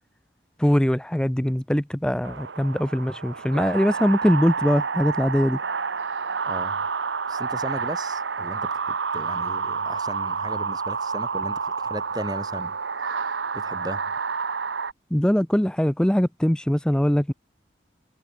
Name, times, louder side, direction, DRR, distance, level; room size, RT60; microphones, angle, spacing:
voice 1, 0.6-5.6 15.1-17.3, equal, 5° left, 0.4 m, -22 dB
sound 1, 2.2-14.9, right 5 dB, 85° right, 1.0 m, -29 dB
voice 2, 6.4-6.8 7.3-12.7 13.0-14.0, right 1 dB, 20° right, 3.2 m, -36 dB
head